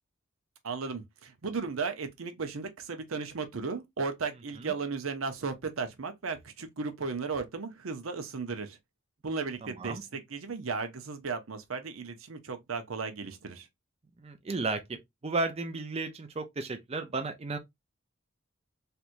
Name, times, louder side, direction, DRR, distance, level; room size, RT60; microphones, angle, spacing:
voice 1, 0.6-8.8 9.2-13.7, right 4 dB, 90° right, 0.7 m, -35 dB
voice 2, 9.6-10.0 14.2-17.6, right 3 dB, 30° right, 0.5 m, -34 dB
3.3 x 2.9 x 2.5 m
head